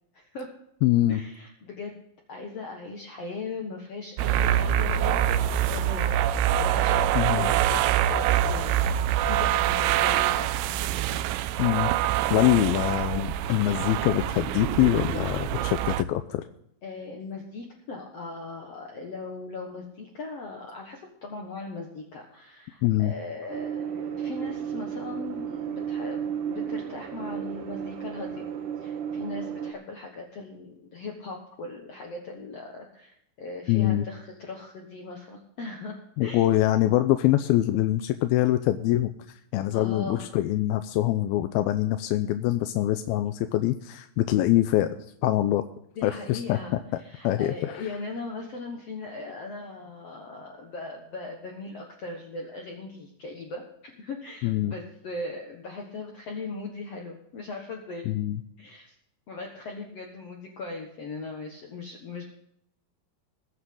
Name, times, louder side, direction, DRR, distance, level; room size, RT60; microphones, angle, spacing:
voice 1, 0.1-0.5 1.1-2.0 2.3-10.7 12.5-12.6 16.8-28.4 28.8-36.5 39.7-40.4 46.0-58.1 58.6-58.9 59.3-62.2, left 3 dB, 55° left, 1 dB, 2.1 m, -39 dB
voice 2, 0.8-1.2 7.2-7.5 11.6-11.9 12.3-16.4 22.8-23.1 33.7-34.0 36.2-39.1 39.5-45.0 45.2-45.6 46.0-46.6 47.2-47.7 54.4-54.7 58.1-58.4, left 14 dB, 85° left, 9 dB, 2.5 m, -24 dB
sound 1, 4.2-16.0, right 11 dB, 90° right, 2.6 m, -25 dB
sound 2, 23.5-29.7, right 8 dB, 70° right, 2.6 m, -33 dB
21.5 x 8.7 x 3.8 m, 0.74 s
omnidirectional pair, 4.3 m